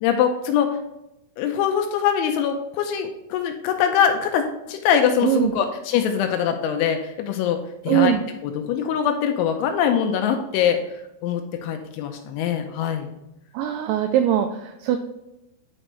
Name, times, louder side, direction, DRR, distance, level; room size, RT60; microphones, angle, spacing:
voice 1, 0.0-0.8 1.4-8.1 8.4-13.2, left 8 dB, 85° left, 5 dB, 2.8 m, -23 dB
voice 2, 7.9-8.2 13.5-15.0, right 11 dB, 85° right, 7 dB, 2.6 m, -21 dB
9.0 x 6.0 x 3.2 m, 0.88 s
omnidirectional pair, 5.8 m